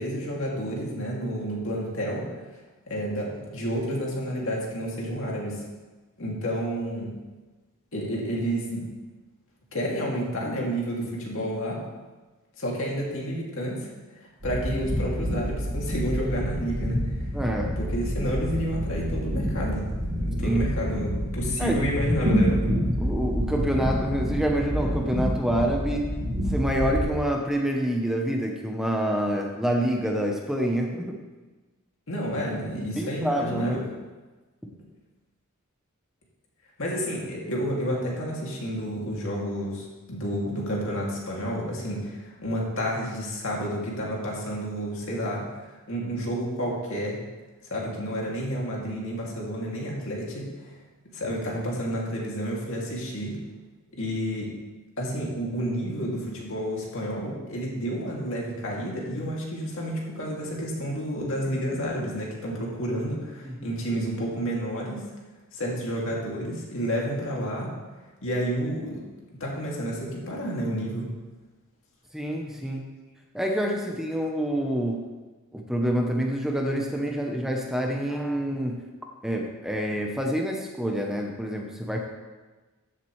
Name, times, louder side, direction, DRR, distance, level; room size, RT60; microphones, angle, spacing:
voice 1, 0.0-2.2 2.9-5.6 6.2-7.1 7.9-8.9 9.7-11.8 12.6-17.3 17.8-19.9 20.2-22.6 32.1-33.9 34.7-34.8 36.8-47.2 47.7-50.7 51.1-53.4 53.9-54.5 55.0-65.0 65.5-67.7 68.2-69.0 69.4-71.1 72.6-72.7, equal, 65° left, -3 dB, 2.4 m, -30 dB
sound 1, 14.4-27.0, equal, 80° right, 2.8 m, -28 dB
voice 2, 17.3-17.8 20.4-20.7 21.6-21.8 22.2-22.4 23.0-26.1 26.5-31.2 33.0-33.9 63.4-63.7 72.1-72.8 73.3-75.1 75.5-78.8 79.2-82.0, right 1 dB, ahead, 1 dB, 0.8 m, -27 dB
13.5 x 7.4 x 3.2 m, 1.3 s
head